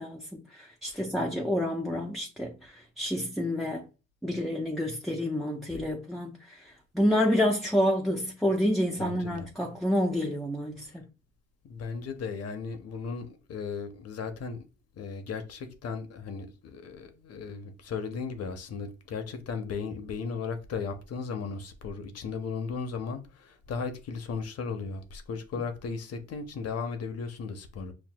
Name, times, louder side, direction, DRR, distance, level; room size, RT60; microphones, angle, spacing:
voice 1, 0.0-3.8 4.2-6.6 6.9-11.0, equal, ahead, 0.5 m, -28 dB
voice 2, 9.0-9.5 10.8-11.0 11.6-14.6 15.0-27.9, left 5 dB, 55° left, 0.8 m, -36 dB
6.0 x 2.2 x 2.2 m
cardioid pair, 90°, 30 cm